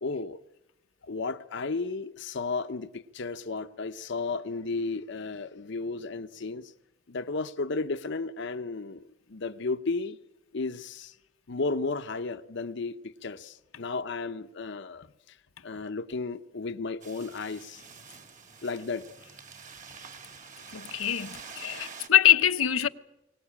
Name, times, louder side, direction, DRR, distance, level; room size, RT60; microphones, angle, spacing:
voice 1, 0.0-0.4 1.0-6.7 7.1-9.0 9.3-10.2 10.5-11.1 11.5-15.4 15.6-17.8 18.6-19.0, left 3 dB, 60° left, 0.8 m, -33 dB
sound 1, 17.0-22.1, right 5 dB, 40° right, 2.2 m, -47 dB
voice 2, 20.7-22.9, left 11 dB, 90° left, 0.9 m, -23 dB
23.0 x 19.0 x 8.7 m
head